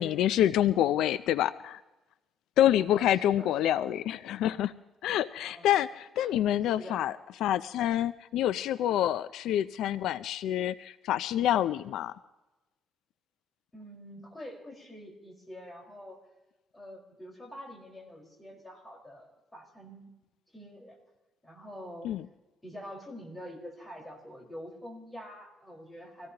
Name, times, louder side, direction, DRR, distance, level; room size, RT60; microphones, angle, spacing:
voice 1, 0.0-1.8 2.6-4.7 5.0-12.1 22.0-22.3, left 11 dB, 80° left, 15 dB, 0.4 m, -27 dB
voice 2, 2.9-3.9 5.4-5.7 6.2-6.3 6.8-7.1 9.5-9.7 13.7-16.2 16.7-20.1 20.5-21.0 21.4-22.1 22.6-26.3, equal, 15° left, -2 dB, 4.6 m, -46 dB
25.5 x 17.5 x 2.9 m, 1.1 s
cardioid pair, 135°, 0 cm